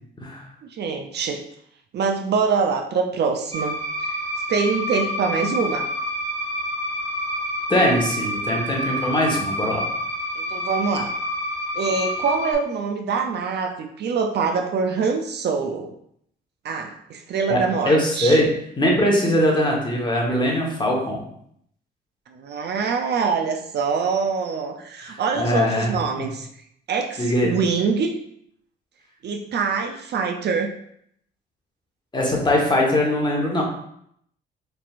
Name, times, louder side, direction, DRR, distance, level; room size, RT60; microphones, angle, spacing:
voice 1, 0.6-1.4 1.9-3.8 4.5-5.9 10.5-11.1 11.7-15.9 16.6-18.4 22.3-26.5 26.9-28.2 29.2-30.7, right 5 dB, 60° right, 5 dB, 0.5 m, -24 dB
sound 1, 3.5-12.5, left 1 dB, 35° right, 1.2 m, -28 dB
voice 2, 7.7-9.8 17.5-18.5 18.8-21.2 25.0-26.3 27.2-27.5 32.1-33.6, left 1 dB, 20° left, -1 dB, 1.1 m, -21 dB
4.2 x 3.4 x 2.4 m, 0.70 s
cardioid pair, 90°, 20 cm